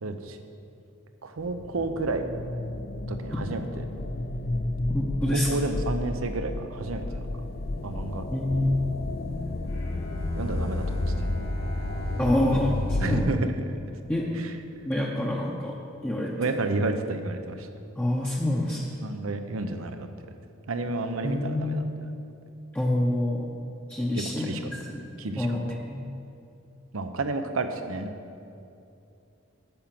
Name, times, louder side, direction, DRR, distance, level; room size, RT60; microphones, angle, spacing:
voice 1, 0.0-0.4 1.2-2.3 3.1-3.8 5.3-7.3 7.8-8.2 10.3-10.8 13.0-13.5 16.4-17.7 19.0-20.1 20.7-21.8 24.4-24.6 25.2-25.5 26.9-28.1, right 3 dB, 85° right, 7 dB, 0.8 m, -30 dB
sound 1, 1.4-13.2, left 2 dB, 50° left, 0.5 m, -32 dB
voice 2, 4.9-5.5 8.3-8.9 12.2-13.3 14.1-14.3 14.9-15.8 16.0-16.3 18.0-18.8 21.2-21.9 22.7-23.5 23.9-26.1, left 1 dB, 10° left, -4 dB, 0.7 m, -27 dB
Bowed string instrument, 9.7-14.9, right 1 dB, 75° left, 1.7 m, -40 dB
8.9 x 5.9 x 7.5 m, 2.7 s
head